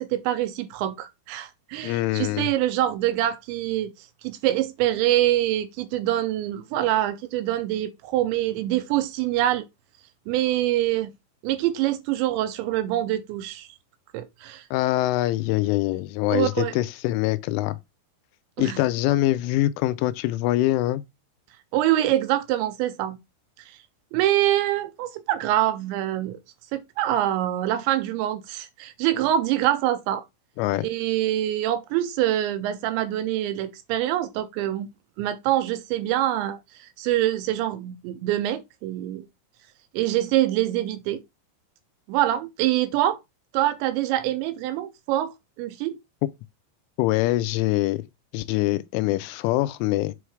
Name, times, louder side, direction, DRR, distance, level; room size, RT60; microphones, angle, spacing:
voice 1, 0.0-9.7 10.3-11.1 11.4-13.7 14.1-14.7 16.3-16.8 18.6-18.8 21.7-23.2 23.6-23.8 24.1-26.4 26.7-30.2 30.8-34.9 35.2-39.3 39.9-41.2 42.1-43.2 43.5-46.0, right 13 dB, 80° right, 2.7 m, -25 dB
voice 2, 1.8-2.5 14.7-17.8 18.6-21.0 30.6-30.9 47.0-48.0 48.3-50.1, left 16 dB, 85° left, 3.1 m, -24 dB
7.8 x 3.2 x 4.8 m
omnidirectional pair, 5.5 m